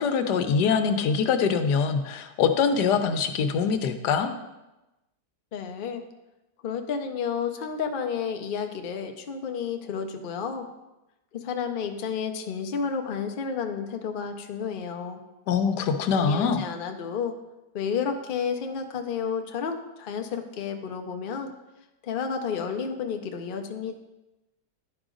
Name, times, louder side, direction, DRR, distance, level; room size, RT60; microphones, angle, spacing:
voice 1, 0.0-4.3 15.5-16.6, left 6 dB, 85° left, 8 dB, 1.3 m, -24 dB
voice 2, 5.5-6.0 6.6-10.7 11.3-15.2 16.1-17.3 17.7-21.5 22.0-24.0, left 6 dB, 55° left, 5 dB, 0.5 m, -31 dB
10.0 x 5.0 x 3.8 m, 1.0 s
omnidirectional pair, 1.7 m